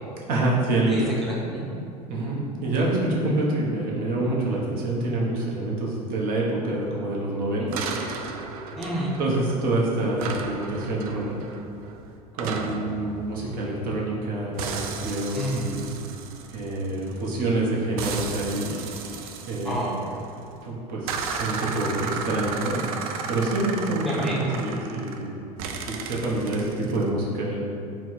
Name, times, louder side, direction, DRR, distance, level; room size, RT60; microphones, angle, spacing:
voice 1, 0.3-1.1 2.1-7.9 9.2-11.4 12.3-15.9 16.5-18.8 19.5-19.9 20.6-22.8 23.3-25.3 25.9-27.6, right 2 dB, 50° right, -3 dB, 0.9 m, -26 dB
voice 2, 0.9-1.7 7.6-7.7 8.8-9.2 15.3-15.6 19.6-19.9 24.0-24.5, right 1 dB, ahead, -5 dB, 0.7 m, -29 dB
sound 1, 7.7-9.8 10.2-14.2 14.6-17.3 18.0-20.4 21.1-25.3 25.6-27.1, right 5 dB, 70° right, 0.4 m, -34 dB
4.4 x 2.1 x 4.2 m, 2.6 s
hypercardioid pair, 75°, 20 cm